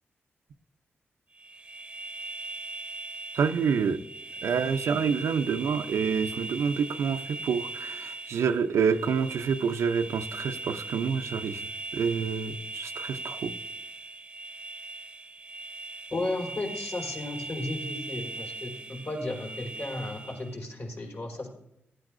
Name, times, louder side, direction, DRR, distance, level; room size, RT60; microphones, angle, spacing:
sound 1, 1.3-20.6, right 3 dB, 25° right, 0.7 m, -40 dB
voice 1, 3.3-4.0 4.4-11.7 11.9-13.5, right 6 dB, 85° right, 6 dB, 0.5 m, -27 dB
voice 2, 16.1-21.5, left 2 dB, 60° left, 0 dB, 4.2 m, -34 dB
15.0 x 11.5 x 2.6 m, 0.83 s
cardioid pair, 60°, 5 cm